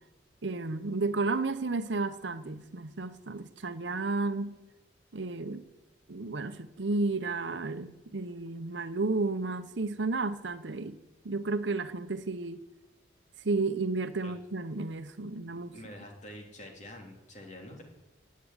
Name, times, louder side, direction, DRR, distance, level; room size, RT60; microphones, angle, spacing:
voice 1, 0.4-4.5 5.1-5.6 6.1-11.0 11.2-12.6 13.4-15.7, right 3 dB, 75° right, 0.8 m, -32 dB
voice 2, 15.5-17.8, left 1 dB, 40° left, 3.0 m, -47 dB
16.0 x 8.5 x 9.7 m
head